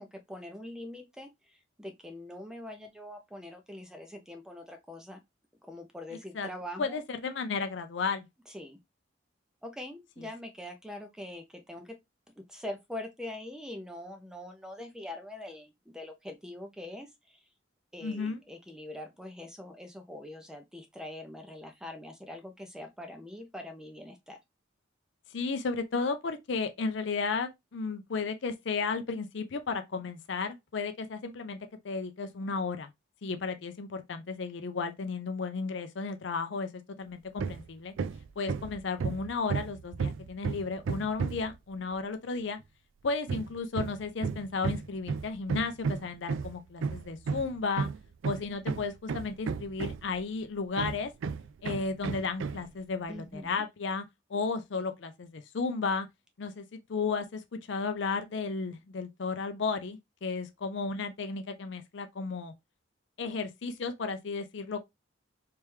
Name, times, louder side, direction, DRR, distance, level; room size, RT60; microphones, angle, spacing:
voice 1, 0.0-5.2 5.7-7.0 8.5-8.8 9.6-11.9 12.5-17.4 17.9-24.4 53.1-53.6, left 1 dB, 5° right, 0.5 m, -43 dB
voice 2, 6.8-8.3 10.2-10.3 18.0-18.4 25.3-32.9 33.2-36.7 37.0-37.9 38.4-42.6 43.0-47.9 48.2-51.1 51.6-54.0 54.3-56.1 56.4-62.5 63.2-64.9, left 4 dB, 65° left, 0.5 m, -34 dB
Hammer, 37.4-37.7 38.0-41.6 43.3-50.2 50.8-52.7, right 5 dB, 80° right, 0.3 m, -33 dB
3.4 x 3.2 x 3.1 m
head